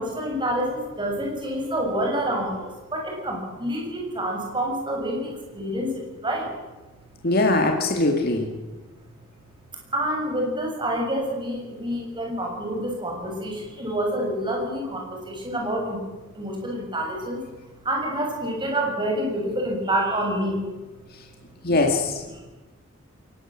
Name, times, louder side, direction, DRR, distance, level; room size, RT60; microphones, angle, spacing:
voice 1, 0.0-6.5 9.9-16.0 16.3-17.4 17.8-20.6 22.3-22.4, right 1 dB, 25° right, 0 dB, 6.9 m, -27 dB
voice 2, 7.2-8.5 21.6-22.2, left 2 dB, 45° left, 3 dB, 2.3 m, -21 dB
22.0 x 19.0 x 7.6 m, 1.2 s
head